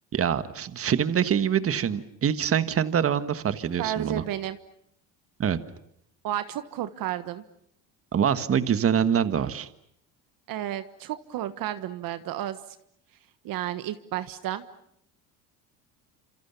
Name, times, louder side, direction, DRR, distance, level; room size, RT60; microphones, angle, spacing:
voice 1, 0.1-4.2 5.4-5.6 8.1-9.7, right 8 dB, 35° right, 12 dB, 1.6 m, -25 dB
voice 2, 3.8-4.6 6.2-7.4 10.5-12.6 13.4-14.6, right 12 dB, 60° right, 11 dB, 1.4 m, -32 dB
27.5 x 27.5 x 7.0 m, 0.73 s
supercardioid pair, 100°, 39 cm